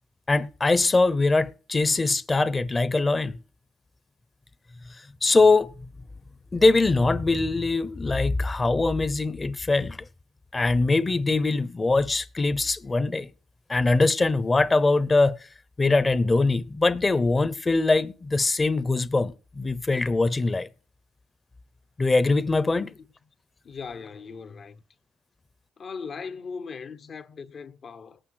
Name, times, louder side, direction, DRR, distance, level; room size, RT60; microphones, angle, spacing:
voice 1, 0.3-3.4 5.2-5.7 6.5-10.0 10.5-13.3 13.7-15.4 15.8-20.7 22.0-22.9, left 3 dB, 25° left, 0.8 m, -22 dB
voice 2, 23.6-24.8 25.8-28.2, left 5 dB, 50° left, 0.9 m, -39 dB
19.5 x 8.9 x 4.8 m
cardioid pair, 90°, 0 cm